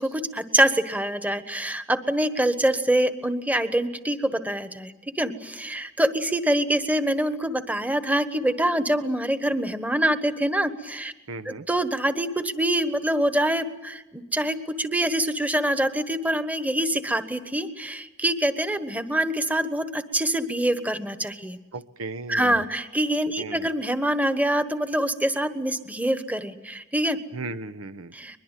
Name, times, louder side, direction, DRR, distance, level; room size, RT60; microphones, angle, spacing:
voice 1, 0.0-11.1 11.4-21.6 22.3-27.2 28.1-28.4, right 1 dB, 5° right, 9 dB, 1.3 m, -25 dB
voice 2, 11.3-11.7 21.7-22.6 23.4-23.7 27.3-28.1, right 3 dB, 75° right, 13 dB, 0.9 m, -36 dB
23.0 x 22.0 x 9.1 m, 1.0 s
head